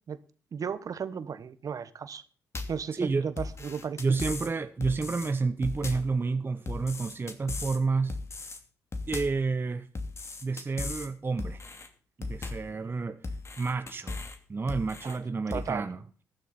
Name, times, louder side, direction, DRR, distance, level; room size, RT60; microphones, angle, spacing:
voice 1, 0.5-2.2 2.7-4.0 15.0-15.2 15.5-15.9, right 6 dB, 55° right, 1.3 m, -35 dB
sound 1, 2.5-2.9 3.4-4.5 4.8-5.3 5.6-6.1 6.7-7.8 8.1-8.6 8.9-9.4 9.9-11.1 11.4-11.9 12.2-12.7 13.2-14.4 14.7-15.2 15.5-15.7, left 3 dB, 40° left, 2.7 m, -37 dB
voice 2, 2.9-3.3 4.0-8.2 9.1-9.9 10.4-11.6 12.2-13.2 13.6-14.2 14.5-16.0, right 4 dB, 30° right, 0.9 m, -30 dB
14.5 x 11.5 x 4.3 m
supercardioid pair, 65°, 7 cm